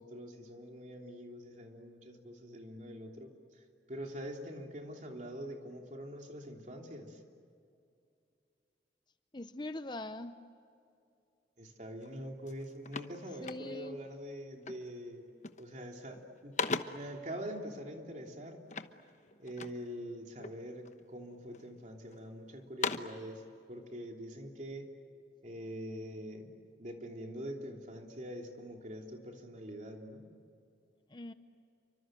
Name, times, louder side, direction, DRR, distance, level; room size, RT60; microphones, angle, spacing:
voice 1, 0.0-3.3 3.9-7.2 11.6-15.2 15.6-16.5 16.8-18.6 19.4-24.9 25.4-26.5 26.8-30.2, equal, 45° right, 2 dB, 3.3 m, -44 dB
voice 2, 9.3-10.3 13.4-14.0 31.1-31.3, left 1 dB, 25° left, 10 dB, 0.8 m, -41 dB
sound 1, 12.0-12.2 12.5-14.0 14.6-15.0 15.3-15.8 16.1-17.2 18.7-19.9 20.4-21.0 21.5-22.2 22.6-23.3, left 4 dB, 40° left, 1.1 m, -39 dB
29.5 x 25.0 x 7.7 m, 2.5 s
head